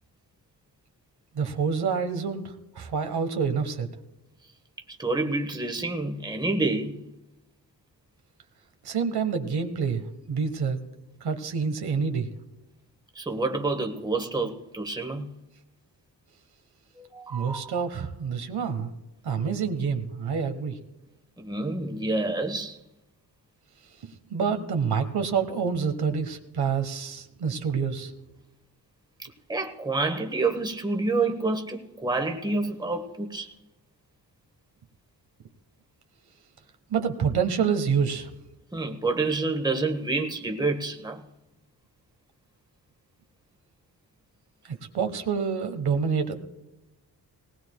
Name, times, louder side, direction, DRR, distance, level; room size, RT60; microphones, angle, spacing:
voice 1, 1.3-3.9 8.8-10.8 11.2-12.3 17.3-18.9 19.2-20.8 24.0-28.1 36.9-38.3 44.6-46.4, right 6 dB, 70° right, 1.4 m, -27 dB
voice 2, 5.0-7.0 13.1-15.3 17.0-17.8 21.4-22.8 29.2-33.5 38.7-41.2, right 3 dB, 10° right, 1.2 m, -28 dB
19.0 x 18.5 x 2.3 m
wide cardioid pair, 115°, 40 cm